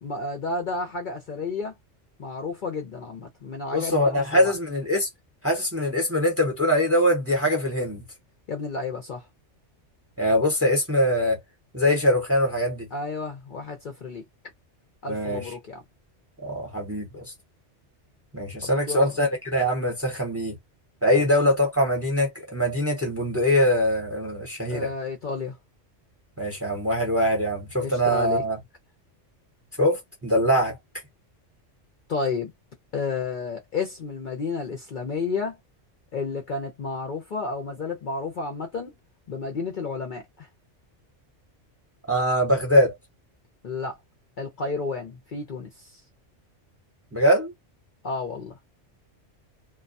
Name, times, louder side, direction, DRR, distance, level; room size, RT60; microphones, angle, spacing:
voice 1, 0.0-1.7 2.2-4.5 8.5-9.3 12.9-14.2 15.0-15.8 18.6-19.1 21.1-21.3 24.7-25.6 27.8-28.4 32.1-32.5 32.9-35.6 36.1-38.9 39.3-40.5 43.6-44.0 44.4-46.0 48.0-48.5, left 4 dB, 55° left, 0.6 m, -31 dB
voice 2, 3.7-5.1 5.4-8.0 10.2-11.4 11.7-12.9 15.1-15.5 16.4-17.3 18.3-20.6 21.0-24.9 26.4-28.6 29.8-30.8 42.1-42.9 47.1-47.5, equal, 15° right, 0.7 m, -23 dB
2.2 x 2.2 x 2.6 m
omnidirectional pair, 1.2 m